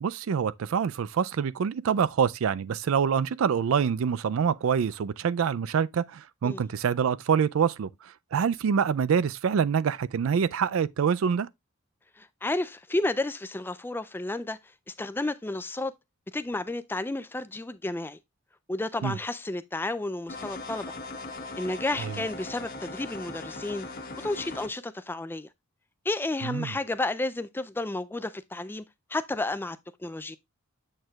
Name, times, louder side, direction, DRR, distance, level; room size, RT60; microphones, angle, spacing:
voice 1, 0.0-7.9 8.3-11.5 19.0-19.2 22.0-22.1 26.4-26.7, right 7 dB, 70° right, 0.4 m, -26 dB
voice 2, 12.2-14.6 14.9-15.9 16.3-18.2 18.7-20.9 21.6-23.9 24.2-25.5 26.1-28.8 29.1-30.4, left 2 dB, 10° left, 0.3 m, -32 dB
sound 1, 20.3-24.7, left 2 dB, 45° left, 1.1 m, -39 dB
7.8 x 6.5 x 2.3 m
head